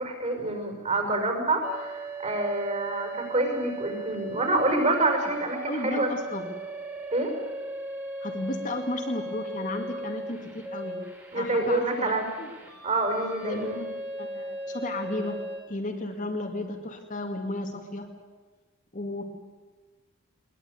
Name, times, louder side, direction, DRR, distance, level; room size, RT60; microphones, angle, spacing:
voice 1, 0.0-6.1 7.1-7.3 11.3-12.3 12.8-13.8, right 2 dB, 30° right, 4 dB, 5.6 m, -27 dB
sound 1, 1.6-15.6, right 2 dB, 10° right, 3.7 m, -38 dB
voice 2, 5.7-6.5 8.2-11.0 11.3-12.5 13.4-15.4 15.7-18.1 18.9-19.2, left 2 dB, 35° left, 3 dB, 2.2 m, -34 dB
21.5 x 20.5 x 9.6 m, 1.3 s
head